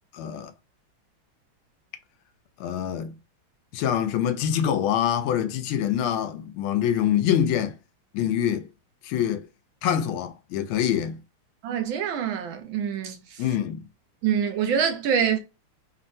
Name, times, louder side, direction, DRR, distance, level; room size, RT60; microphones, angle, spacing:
voice 1, 0.1-0.5 2.6-3.1 3.7-7.7 8.1-8.7 9.0-9.4 9.8-11.2 13.4-13.8, left 9 dB, 80° left, 1.4 m, -25 dB
voice 2, 11.6-13.4 14.2-15.4, right 8 dB, 75° right, 1.3 m, -25 dB
3.6 x 2.0 x 2.5 m
omnidirectional pair, 2.3 m